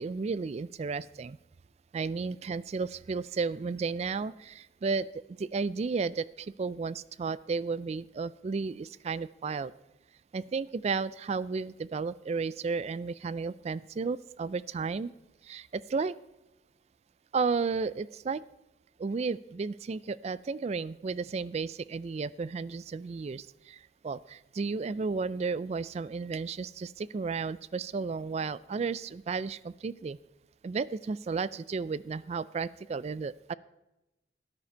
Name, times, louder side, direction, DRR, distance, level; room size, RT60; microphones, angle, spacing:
voice 1, 0.0-1.4 1.9-5.1 5.4-9.7 10.3-15.1 15.4-16.2 17.3-18.4 19.0-30.2 30.6-33.5, right 4 dB, 35° right, 19 dB, 0.3 m, -33 dB
13.5 x 9.8 x 4.5 m, 0.96 s
head